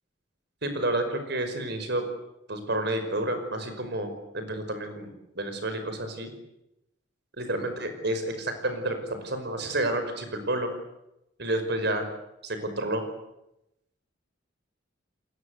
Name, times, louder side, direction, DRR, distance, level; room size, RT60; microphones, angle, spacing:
voice 1, 0.6-2.0 2.5-5.1 5.4-6.3 7.4-9.0 9.2-10.7 11.4-12.1 12.4-13.0, right 1 dB, 60° right, 7 dB, 5.5 m, -30 dB
30.0 x 21.0 x 8.2 m, 0.87 s
head